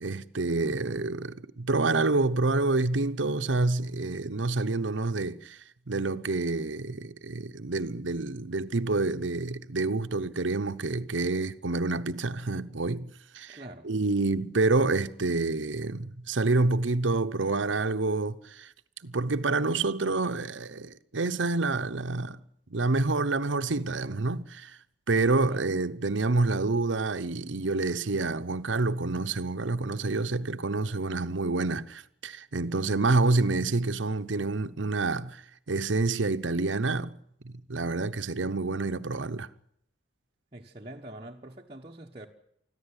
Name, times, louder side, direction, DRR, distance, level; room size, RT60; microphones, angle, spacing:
voice 1, 0.0-5.6 5.9-13.1 13.3-13.6 13.8-18.7 19.0-22.4 22.7-24.8 25.1-35.4 35.7-37.1 37.4-39.5, right 3 dB, 80° right, 0.9 m, -28 dB
voice 2, 13.5-13.9 25.5-25.7 40.5-42.3, right 1 dB, 30° right, 1.2 m, -44 dB
25.0 x 14.0 x 9.9 m
head